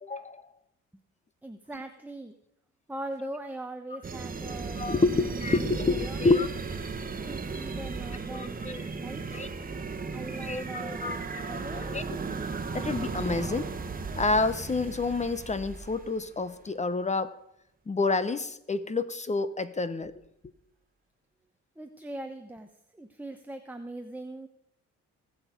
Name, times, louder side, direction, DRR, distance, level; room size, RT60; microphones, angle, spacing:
voice 1, 0.0-0.5 4.8-6.5 8.3-8.9 9.3-9.5 10.4-12.0 12.7-13.7 14.2-17.3 17.9-20.1, left 3 dB, 25° left, 14 dB, 0.8 m, -28 dB
voice 2, 1.4-2.4 2.9-6.2 7.3-8.7 9.0-9.2 10.1-11.8 21.8-22.7 22.9-24.5, right 1 dB, 5° right, 6 dB, 0.9 m, -41 dB
sound 1, 4.0-16.3, right 4 dB, 30° right, 1.3 m, -36 dB
19.5 x 6.5 x 5.1 m, 0.78 s
cardioid pair, 90°, 30 cm